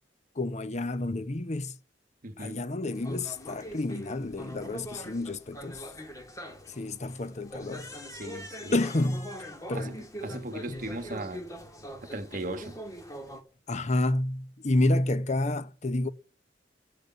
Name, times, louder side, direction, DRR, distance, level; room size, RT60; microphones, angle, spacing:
voice 1, 0.4-1.7 2.4-5.8 6.7-7.9 8.7-9.3 9.7-10.0 10.3-10.9 13.7-16.1, left 2 dB, 40° left, 0.8 m, -29 dB
voice 2, 2.2-2.6 8.1-8.8 9.7-9.9 10.2-11.5 12.0-12.8, right 2 dB, 50° right, 1.3 m, -37 dB
sound 1, 2.9-13.4, equal, 20° left, 1.9 m, -43 dB
14.5 x 6.7 x 8.6 m
head